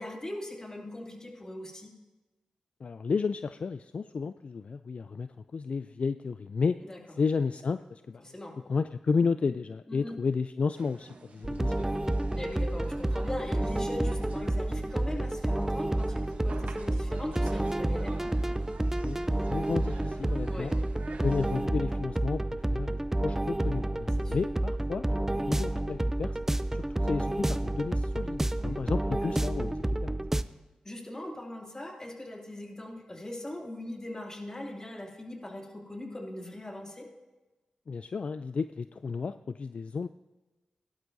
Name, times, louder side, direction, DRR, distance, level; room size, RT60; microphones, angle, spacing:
voice 1, 0.0-1.9 6.8-7.0 8.2-8.6 9.9-10.2 12.3-18.2 20.5-20.7 24.2-24.4 28.6-28.8 30.8-37.1, left 1 dB, 25° left, 1 dB, 2.6 m, -40 dB
voice 2, 2.8-6.8 7.1-8.2 8.7-11.9 19.0-19.2 19.5-20.7 21.2-26.4 26.7-30.2 37.9-40.1, left 5 dB, 55° left, 11 dB, 0.3 m, -32 dB
sound 1, 10.8-21.7, right 4 dB, 65° right, 1.1 m, -49 dB
sound 2, 11.4-30.4, right 1 dB, 15° right, 0.5 m, -30 dB
17.0 x 11.5 x 2.7 m, 1.1 s
cardioid pair, 45°, 2 cm